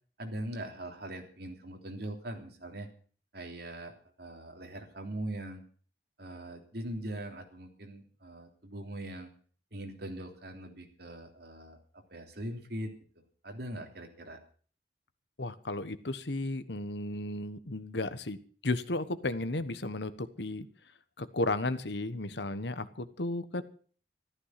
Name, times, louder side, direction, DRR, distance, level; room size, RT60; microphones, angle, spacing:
voice 1, 0.2-2.9 3.3-5.6 6.2-9.3 9.7-14.4, right 1 dB, 60° right, 4 dB, 3.3 m, -41 dB
voice 2, 15.4-20.7 21.2-23.6, left 2 dB, 70° left, 13 dB, 1.2 m, -34 dB
14.5 x 13.5 x 5.9 m, 0.44 s
head